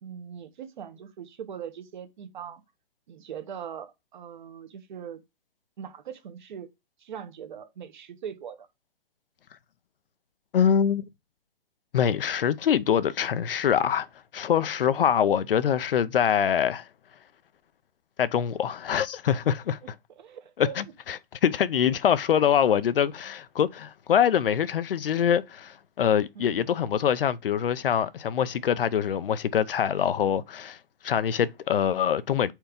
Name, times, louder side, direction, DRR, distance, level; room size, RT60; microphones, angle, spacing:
voice 1, 0.0-2.6 3.1-5.2 5.8-6.7 7.0-8.7 14.6-14.8 19.8-19.9 20.2-20.8 26.3-26.6, right 8 dB, 50° right, 1.3 m, -41 dB
voice 2, 10.5-11.1 11.9-14.1 14.3-16.9 18.2-19.8 20.6-30.8 31.0-32.5, left 8 dB, 60° left, 0.6 m, -24 dB
4.6 x 4.5 x 5.1 m
hypercardioid pair, 160°, 31 cm